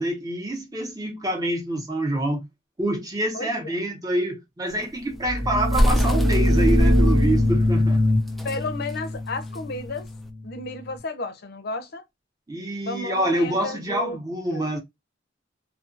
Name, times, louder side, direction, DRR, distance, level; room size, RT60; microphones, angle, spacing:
voice 1, 0.0-2.5 2.8-8.0 12.5-14.8, right 1 dB, 20° right, 0.8 m, -26 dB
voice 2, 3.3-3.7 8.4-10.1 10.4-12.0 12.9-14.2 14.5-14.7, left 2 dB, 55° left, 0.6 m, -32 dB
sound 1, 4.7-10.3, equal, ahead, 0.3 m, -27 dB
sound 2, 5.2-10.8, left 1 dB, 50° right, 1.1 m, -22 dB
2.4 x 2.3 x 2.5 m
head